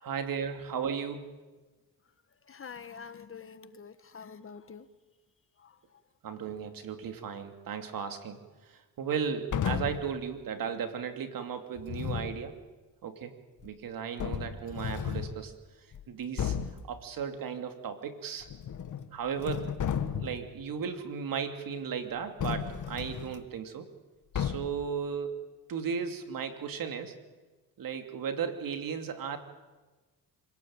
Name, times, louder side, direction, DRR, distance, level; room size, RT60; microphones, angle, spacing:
voice 1, 0.0-1.4 6.2-8.4 8.6-12.6 13.0-13.3 13.6-15.5 16.1-16.6 16.9-18.5 19.1-19.7 20.2-23.9 24.3-25.4 25.7-27.1 27.8-29.4, right 7 dB, 65° right, 7 dB, 2.8 m, -35 dB
voice 2, 2.4-4.9 5.6-6.0 6.3-6.5, left 6 dB, 35° left, 12 dB, 1.4 m, -47 dB
sound 1, 9.5-10.1 11.8-12.4 13.6-13.7 14.2-15.4 15.9-16.0 16.4-16.8 18.4-19.1 19.4-20.5 22.4-23.4 24.3-24.9, left 8 dB, 55° left, 1.7 m, -33 dB
25.5 x 18.0 x 9.0 m, 1.2 s
cardioid pair, 100°, 37 cm